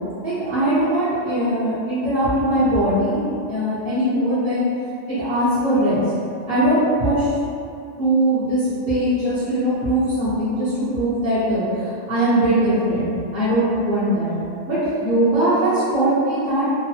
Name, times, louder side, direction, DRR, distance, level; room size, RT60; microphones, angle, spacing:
voice 1, 0.2-4.7 5.1-6.0 6.5-7.3 8.0-14.3 14.7-16.7, right 1 dB, 40° right, -17 dB, 0.9 m, -20 dB
3.0 x 2.1 x 2.9 m, 2.5 s
omnidirectional pair, 1.7 m